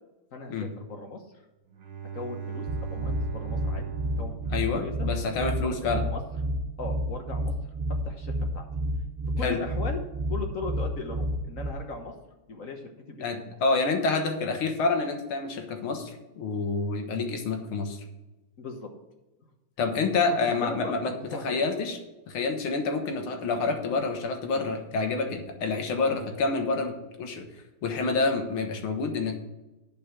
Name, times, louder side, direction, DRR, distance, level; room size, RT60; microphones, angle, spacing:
voice 1, 0.3-1.2 2.1-3.9 4.2-5.1 5.6-6.2 6.8-7.5 8.0-8.7 9.4-10.0 10.3-12.1 12.5-13.2 18.6-18.9 20.3-21.6, left 3 dB, 45° left, 3 dB, 1.3 m, -38 dB
Bowed string instrument, 1.7-5.5, right 7 dB, 75° right, 2.3 m, -39 dB
sound 1, 2.7-11.7, equal, 60° right, 0.6 m, -30 dB
voice 2, 4.5-6.0 9.4-9.6 13.2-18.0 19.8-21.1 21.4-22.0 22.3-27.4 27.8-29.4, left 3 dB, 75° left, 5 dB, 2.2 m, -28 dB
10.5 x 5.3 x 6.1 m, 1.0 s
omnidirectional pair, 2.4 m